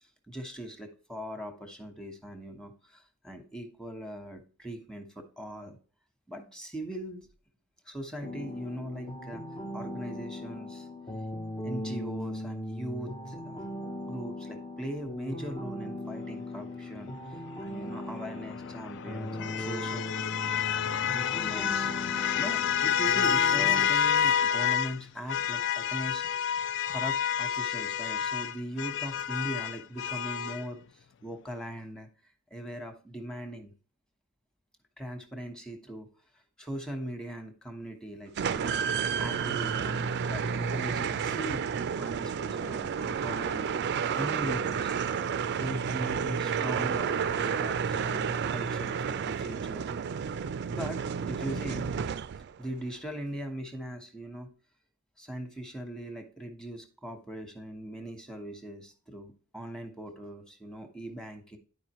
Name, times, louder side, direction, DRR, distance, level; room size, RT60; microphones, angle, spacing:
voice 1, 0.0-5.8 6.3-7.3 7.9-9.4 9.7-10.9 11.6-13.7 14.0-20.1 20.4-20.7 21.1-21.9 22.4-32.1 32.5-33.7 35.0-36.1 36.6-41.7 42.0-43.7 44.1-45.0 45.5-49.8 50.7-52.2 52.6-54.5 55.2-61.6, right 1 dB, 5° left, 5 dB, 1.1 m, -40 dB
sound 1, 8.2-23.9, left 1 dB, 20° left, 0.6 m, -39 dB
sound 2, 18.3-25.0 25.3-30.6, left 8 dB, 55° left, 0.4 m, -29 dB
sound 3, 38.4-52.6, right 6 dB, 50° right, 0.4 m, -31 dB
10.5 x 4.9 x 3.0 m, 0.38 s
head